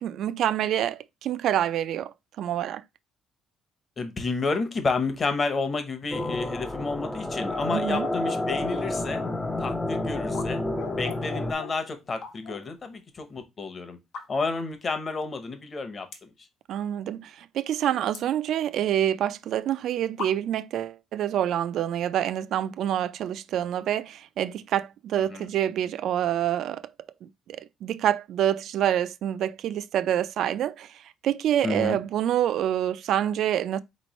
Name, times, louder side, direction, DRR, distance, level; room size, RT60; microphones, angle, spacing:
voice 1, 0.0-2.8 7.7-8.1 16.7-26.8 27.2-33.8, right 11 dB, 65° right, 0.3 m, -27 dB
voice 2, 4.0-9.2 9.6-10.6 11.0-14.0 14.3-16.1 25.3-25.5 31.6-32.0, left 4 dB, 30° left, 0.8 m, -30 dB
sound 1, 6.1-11.5, left 1 dB, 10° left, 0.5 m, -30 dB
sound 2, 7.4-9.5 10.7-12.2 12.4-12.8, left 13 dB, 90° left, 0.3 m, -42 dB
sound 3, 10.2-10.5 10.9-11.2 12.0-12.7 13.1-13.2 14.0-14.6 15.1-15.2 15.4-15.5 16.1-16.4 16.8-17.3 17.6-19.0 19.7-19.8 20.2-20.7, left 5 dB, 70° left, 1.2 m, -40 dB
4.2 x 3.1 x 4.0 m
cardioid pair, 140°, 0 cm